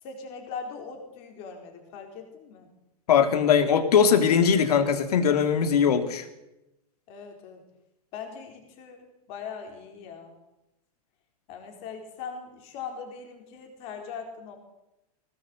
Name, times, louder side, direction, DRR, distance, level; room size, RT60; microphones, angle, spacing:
voice 1, 0.0-2.7 7.1-7.6 8.1-10.4 11.5-14.6, left 6 dB, 30° left, 4 dB, 4.4 m, -40 dB
voice 2, 3.1-6.3, left 7 dB, 75° left, 8 dB, 3.1 m, -21 dB
20.5 x 18.5 x 8.0 m, 0.93 s
supercardioid pair, 175°, 20 cm